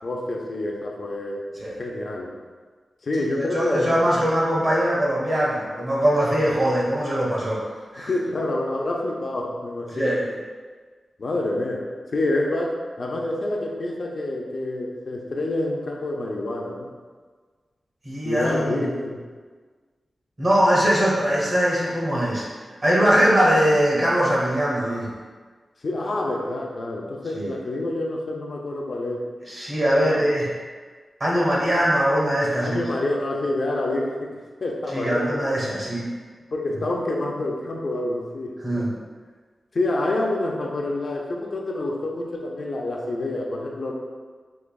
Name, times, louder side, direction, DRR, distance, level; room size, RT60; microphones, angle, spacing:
voice 1, 0.0-1.4 1.8-2.3 3.0-4.0 8.1-10.1 11.2-16.9 18.2-19.2 25.8-29.2 29.9-30.2 32.6-34.3 34.6-35.4 36.5-38.9 39.7-43.9, left 2 dB, 55° left, -1 dB, 0.4 m, -27 dB
voice 2, 3.5-7.6 7.9-8.1 9.9-10.3 18.0-18.9 20.4-22.4 22.8-25.1 27.3-27.6 29.5-30.5 31.2-32.8 34.9-36.1 38.6-38.9, equal, 35° right, -5 dB, 1.1 m, -21 dB
4.7 x 2.9 x 2.2 m, 1.5 s
wide cardioid pair, 130°, 0 cm